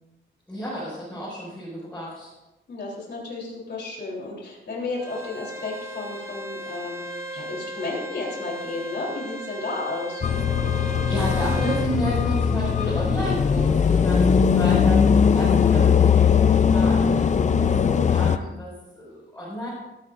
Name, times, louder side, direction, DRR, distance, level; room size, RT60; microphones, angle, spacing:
voice 1, 0.5-2.3 10.6-19.7, equal, 5° left, -9 dB, 5.7 m, -32 dB
voice 2, 2.7-7.1 7.3-10.2, left 3 dB, 55° left, -3 dB, 3.6 m, -32 dB
Bowed string instrument, 5.0-11.9, right 1 dB, 15° right, 1.1 m, -36 dB
sound 1, 10.2-18.4, left 6 dB, 35° left, 0.5 m, -19 dB
20.5 x 12.5 x 2.6 m, 1.0 s
wide cardioid pair, 155°, 20 cm